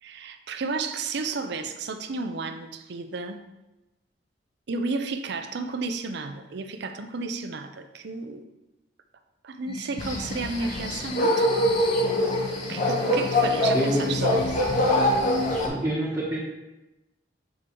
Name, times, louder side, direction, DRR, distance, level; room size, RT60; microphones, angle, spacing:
voice 1, 0.0-3.4 4.7-8.4 9.4-11.5 12.7-14.6, right 3 dB, 65° right, 7 dB, 0.5 m, -32 dB
sound 1, 9.7-15.6, left 3 dB, 30° left, 0.3 m, -34 dB
sound 2, 10.0-15.7, left 1 dB, 45° left, 1.1 m, -24 dB
voice 2, 13.7-14.1 15.7-16.4, equal, 10° right, -8 dB, 1.0 m, -26 dB
7.9 x 4.7 x 3.0 m, 1.0 s
head